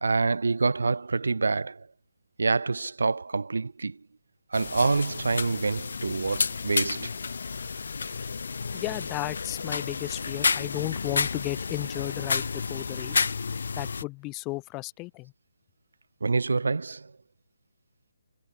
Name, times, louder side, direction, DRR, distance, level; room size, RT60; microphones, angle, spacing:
voice 1, 0.0-1.9 2.4-4.0 4.5-7.1 16.2-17.1, right 4 dB, 90° right, 1.1 m, -26 dB
sound 1, 4.5-14.0, left 5 dB, 60° left, 2.4 m, -31 dB
voice 2, 8.7-13.3 13.7-15.3, left 23 dB, 15° left, 0.8 m, -34 dB
hypercardioid pair, 175°, 0 cm